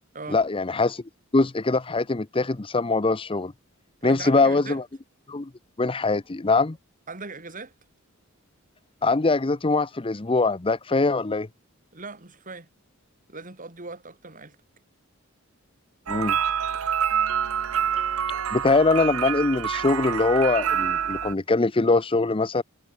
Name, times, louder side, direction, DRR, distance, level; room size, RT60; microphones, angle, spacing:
voice 1, 0.3-1.0 1.3-3.5 4.0-4.8 5.3-5.5 5.8-6.8 9.0-11.5 16.1-16.4 18.5-22.6, left 3 dB, 25° left, 0.7 m, -22 dB
voice 2, 4.0-4.8 7.1-7.7 11.9-12.7 13.3-14.6, right 3 dB, 40° right, 3.9 m, -39 dB
sound 1, 16.1-21.3, right 8 dB, 90° right, 0.7 m, -26 dB
head